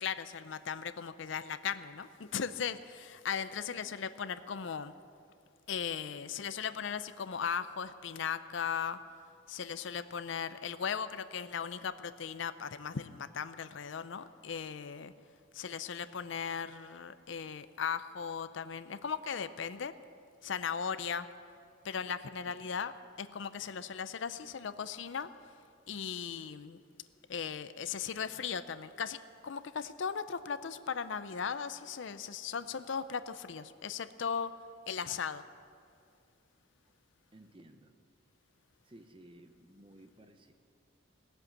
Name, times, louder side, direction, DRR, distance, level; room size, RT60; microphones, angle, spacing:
voice 1, 0.0-4.9 5.7-9.0 9.5-15.1 15.5-19.9 20.4-21.3 21.8-25.3 25.9-26.8 27.3-34.5 34.9-35.4, left 6 dB, 65° left, 13 dB, 0.5 m, -37 dB
voice 2, 22.5-22.8 37.3-37.9 38.8-40.5, right 1 dB, 25° right, 7 dB, 0.8 m, -56 dB
17.5 x 7.9 x 8.5 m, 2.4 s
head